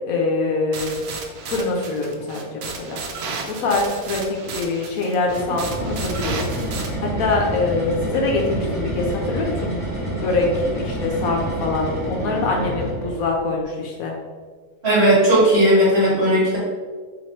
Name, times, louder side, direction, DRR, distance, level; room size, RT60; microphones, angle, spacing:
voice 1, 0.1-1.0 1.4-3.0 3.5-6.4 7.0-9.9 10.1-14.1, left 3 dB, 70° left, 0 dB, 1.0 m, -24 dB
sound 1, 0.7-6.9, right 4 dB, 85° right, 1.1 m, -33 dB
sound 2, 5.3-13.3, right 1 dB, 5° right, 1.2 m, -28 dB
voice 2, 14.8-16.6, right 1 dB, 45° right, -7 dB, 1.6 m, -16 dB
3.1 x 2.9 x 4.4 m, 1.5 s
omnidirectional pair, 1.6 m